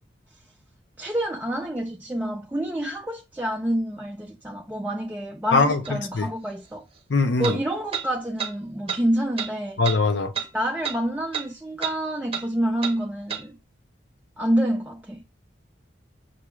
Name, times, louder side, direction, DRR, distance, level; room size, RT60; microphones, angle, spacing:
voice 1, 1.0-6.8 7.4-9.8 10.5-13.6 14.4-15.2, right 1 dB, 10° right, 0.4 m, -27 dB
voice 2, 5.5-5.8 6.1-6.3 7.1-7.6 9.8-10.3, left 3 dB, 70° left, 0.6 m, -21 dB
sound 1, 5.9-6.0 7.4-7.6 7.9-8.1 8.4-8.5 8.9-9.0 9.4-9.5 9.8-10.0 10.4-10.5 10.8-11.0 11.3-11.5 11.8-12.0 12.3-12.5 12.8-13.0 13.3-13.4, right 7 dB, 30° right, 0.8 m, -30 dB
5.9 x 2.3 x 3.1 m
head